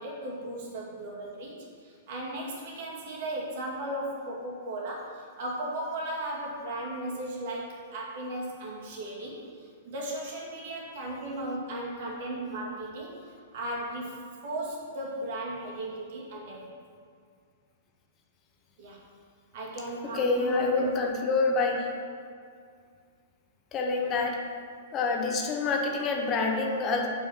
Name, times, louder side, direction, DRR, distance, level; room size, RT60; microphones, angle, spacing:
voice 1, 0.0-13.2 13.5-14.2 14.4-16.8 18.8-19.1 19.5-20.9 23.9-24.2, right 1 dB, 55° right, -3 dB, 2.2 m, -36 dB
voice 2, 20.1-21.9 23.7-24.4 24.9-27.1, left 3 dB, 30° left, 1 dB, 1.2 m, -27 dB
7.4 x 5.4 x 6.3 m, 2.2 s
figure-of-eight pair, 105°, 0 cm